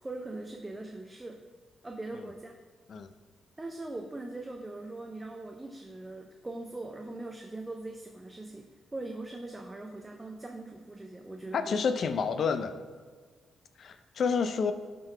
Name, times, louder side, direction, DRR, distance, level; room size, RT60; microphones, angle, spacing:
voice 1, 0.0-1.4 1.8-2.5 3.6-11.9, right 2 dB, 15° right, 2 dB, 0.5 m, -41 dB
voice 2, 11.5-12.7 13.8-14.7, left 5 dB, 55° left, 10 dB, 0.5 m, -29 dB
11.5 x 3.9 x 3.2 m, 1.5 s
cardioid pair, 120°, 0 cm